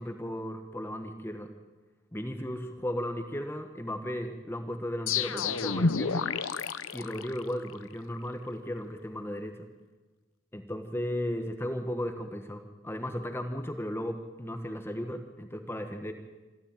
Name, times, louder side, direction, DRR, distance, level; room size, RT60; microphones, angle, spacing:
voice 1, 0.0-1.5 2.1-6.3 6.9-9.7 10.5-16.1, equal, 10° left, 6 dB, 1.4 m, -35 dB
sound 1, 5.1-7.8, left 4 dB, 85° left, 0.8 m, -30 dB
27.0 x 12.5 x 9.0 m, 1.2 s
head